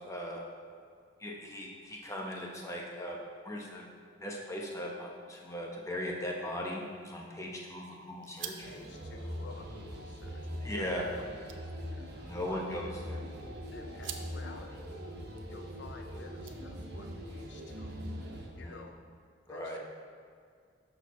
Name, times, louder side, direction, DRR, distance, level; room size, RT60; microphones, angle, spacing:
voice 1, 0.1-0.4 1.2-3.2 3.4-3.8 4.2-8.7 10.6-11.1 12.2-13.2 18.6-18.8 19.5-19.8, left 1 dB, 15° left, -1 dB, 0.9 m, -38 dB
sound 1, 6.8-17.1, right 9 dB, 75° right, 0.6 m, -52 dB
voice 2, 8.6-10.4 10.7-12.7 13.7-14.9 15.5-19.0 19.5-19.8, left 3 dB, 60° left, 4 dB, 0.4 m, -51 dB
sound 2, 8.6-18.5, equal, 55° right, 1.0 m, -42 dB
10.5 x 6.5 x 3.1 m, 2.1 s
head